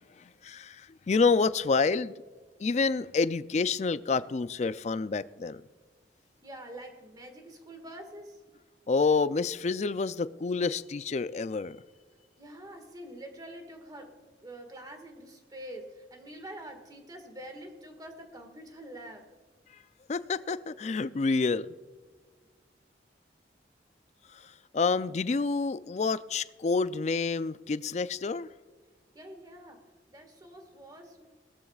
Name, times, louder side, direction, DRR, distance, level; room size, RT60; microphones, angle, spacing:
voice 1, 0.4-2.1 2.6-5.6 8.9-11.8 20.1-21.7 24.7-28.5, left 4 dB, 40° left, 0.4 m, -28 dB
voice 2, 6.4-8.4 12.4-14.1 14.4-19.3 29.1-29.8 30.1-31.3, right 1 dB, 20° right, 1.8 m, -46 dB
18.5 x 13.0 x 2.4 m
head